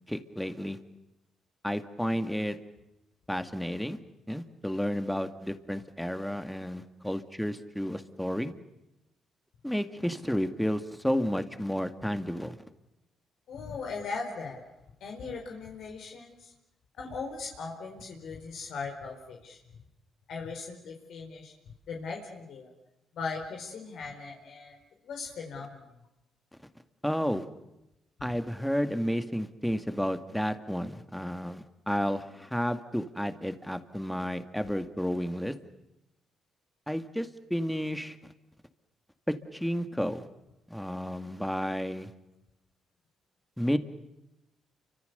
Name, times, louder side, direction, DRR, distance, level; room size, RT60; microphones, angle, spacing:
voice 1, 0.1-0.8 1.6-2.6 3.3-4.0 4.3-8.5 9.6-12.6 27.0-27.4 28.2-35.5 36.9-38.2 39.3-40.3 40.7-42.1 43.6-43.8, equal, ahead, 8 dB, 2.1 m, -31 dB
voice 2, 13.5-14.6 15.0-16.5 17.0-19.6 20.3-21.5 21.9-22.7 23.1-24.8 25.0-25.8, left 4 dB, 70° left, 1 dB, 4.6 m, -39 dB
30.0 x 25.0 x 6.9 m, 0.92 s
cardioid pair, 90°, 0 cm